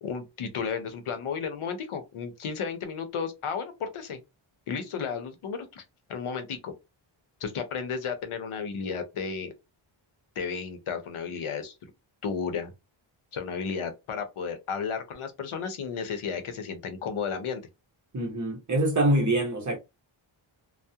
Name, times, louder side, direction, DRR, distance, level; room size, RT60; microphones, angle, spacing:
voice 1, 0.0-4.2 4.7-5.8 6.1-6.7 7.4-9.5 10.4-11.8 12.2-12.7 13.3-17.6, left 6 dB, 80° left, 0.7 m, -33 dB
voice 2, 18.1-19.8, right 1 dB, 35° right, 0.8 m, -25 dB
2.3 x 2.0 x 2.7 m
wide cardioid pair, 140°, 49 cm